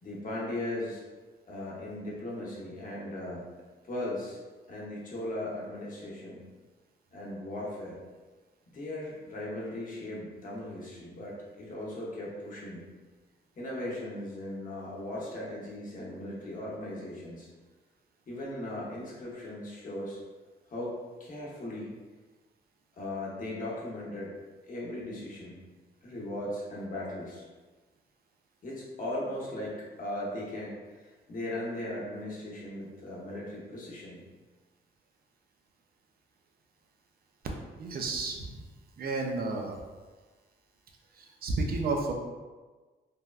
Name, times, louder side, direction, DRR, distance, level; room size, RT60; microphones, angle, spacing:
voice 1, 0.0-1.0 1.5-3.5 3.8-4.4 4.7-6.4 7.1-8.0 8.7-12.9 13.6-17.5 18.3-20.2 20.7-21.9 22.9-24.4 24.7-25.6 26.0-27.4 28.6-34.2, left 1 dB, 45° left, -5 dB, 0.8 m, -38 dB
voice 2, 37.8-38.6 39.0-39.8 41.1-42.1, right 3 dB, 55° right, 2 dB, 0.4 m, -32 dB
3.3 x 2.1 x 2.3 m, 1.3 s
wide cardioid pair, 125°, 19 cm